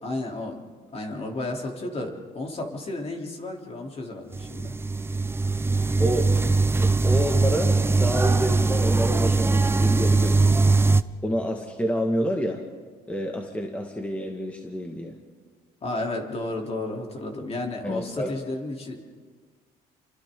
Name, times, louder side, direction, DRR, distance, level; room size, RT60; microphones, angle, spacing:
voice 1, 0.0-4.7 15.8-19.0, left 2 dB, 35° left, 1 dB, 3.5 m, -32 dB
sound 1, 4.3-11.0, right 3 dB, 15° right, 0.6 m, -21 dB
voice 2, 6.0-6.3 6.8-10.7 11.2-12.6 13.1-15.2 17.8-18.3, equal, 10° left, 2 dB, 1.9 m, -29 dB
29.5 x 25.0 x 3.9 m, 1.5 s
cardioid pair, 110°, 17 cm